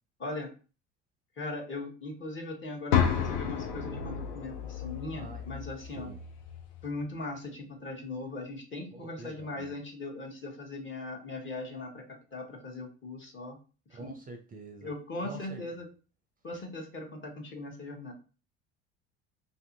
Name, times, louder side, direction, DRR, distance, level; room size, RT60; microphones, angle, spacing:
voice 1, 0.2-0.5 1.4-6.1 6.8-12.1 12.3-13.6 13.9-14.2 14.8-15.9 16.4-18.1, left 2 dB, 35° left, 1 dB, 1.0 m, -39 dB
sound 1, 2.9-6.9, left 8 dB, 70° left, 0.6 m, -32 dB
voice 2, 5.1-5.4 5.9-6.2 8.9-9.8 13.9-14.9 15.2-15.6, right 3 dB, 25° right, 4 dB, 0.5 m, -46 dB
2.6 x 2.5 x 2.7 m, 0.35 s
hypercardioid pair, 65°, 35 cm